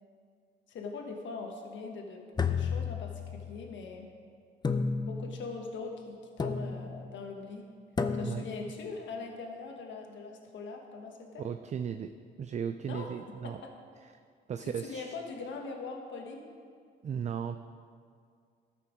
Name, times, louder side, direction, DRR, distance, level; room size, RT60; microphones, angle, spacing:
voice 1, 0.7-2.2 2.5-4.1 5.0-7.7 8.1-11.4 12.9-13.1 13.4-13.7 14.6-16.5, left 4 dB, 70° left, 2 dB, 1.4 m, -41 dB
sound 1, 2.4-3.6 4.6-5.4 6.4-7.0 8.0-8.6, left 5 dB, 20° left, 0.6 m, -32 dB
voice 2, 11.4-13.6 14.5-15.1 17.0-17.6, right 7 dB, 35° right, 9 dB, 0.4 m, -36 dB
13.0 x 5.8 x 5.0 m, 2.2 s
cardioid pair, 90°, 20 cm